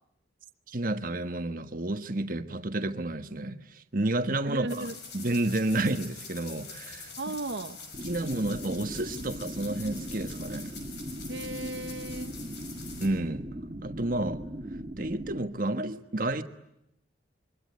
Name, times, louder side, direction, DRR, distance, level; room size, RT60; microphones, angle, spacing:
voice 1, 0.7-4.9 5.1-7.3 8.0-10.7 13.0-13.5 13.8-14.4 15.0-16.4, right 2 dB, 50° right, 1.4 m, -30 dB
voice 2, 4.4-4.9 7.2-7.8 11.3-12.4, right 2 dB, 75° right, 1.0 m, -35 dB
sound 1, 4.7-13.1, left 5 dB, 65° left, 5.9 m, -45 dB
sound 2, 7.9-15.4, right 1 dB, 30° right, 2.0 m, -39 dB
27.0 x 23.5 x 9.4 m
head